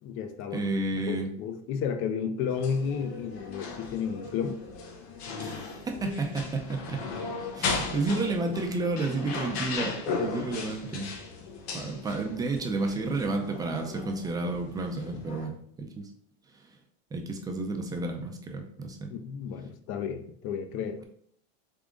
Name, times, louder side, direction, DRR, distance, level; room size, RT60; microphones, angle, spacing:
voice 1, 0.0-0.6 1.1-4.6 19.1-21.0, left 6 dB, 40° left, 0.5 m, -32 dB
voice 2, 0.5-1.3 5.4-7.1 7.5-11.1 11.7-16.1 16.5-16.6 17.1-19.1, right 2 dB, 10° right, 0.5 m, -31 dB
sound 1, 2.5-15.5, left 4 dB, 80° left, 1.0 m, -37 dB
3.7 x 3.6 x 3.6 m
supercardioid pair, 145°, 32 cm